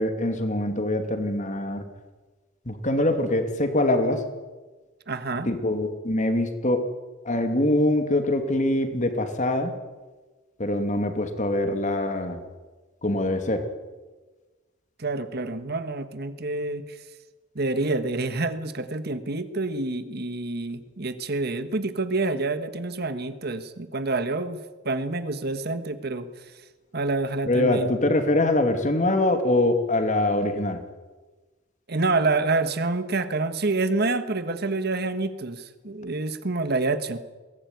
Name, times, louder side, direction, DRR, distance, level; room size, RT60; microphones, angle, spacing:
voice 1, 0.0-1.8 2.6-4.2 5.4-6.9 7.2-9.7 10.6-12.4 13.0-13.7 27.4-30.8, left 1 dB, 40° left, 7 dB, 2.7 m, -24 dB
voice 2, 5.1-5.5 15.0-17.0 17.5-26.3 26.9-27.9 31.9-37.2, right 3 dB, 55° right, 11 dB, 1.5 m, -27 dB
22.0 x 18.5 x 9.4 m, 1.3 s
head